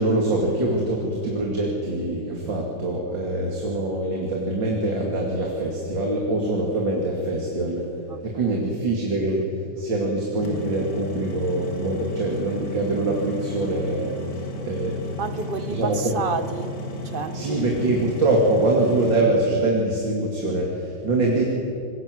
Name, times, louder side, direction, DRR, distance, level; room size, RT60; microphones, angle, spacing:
voice 1, 0.0-7.9 8.2-9.5 9.8-14.1 14.6-15.2 15.7-16.1 17.3-21.6, right 2 dB, 65° right, 3.1 m, -24 dB
voice 2, 8.1-8.6 15.2-16.8 17.0-17.7, right 4 dB, 40° right, 0.8 m, -30 dB
sound 1, 10.4-19.2, left 1 dB, 50° left, 2.6 m, -34 dB
25.5 x 21.5 x 7.8 m
omnidirectional pair, 2.2 m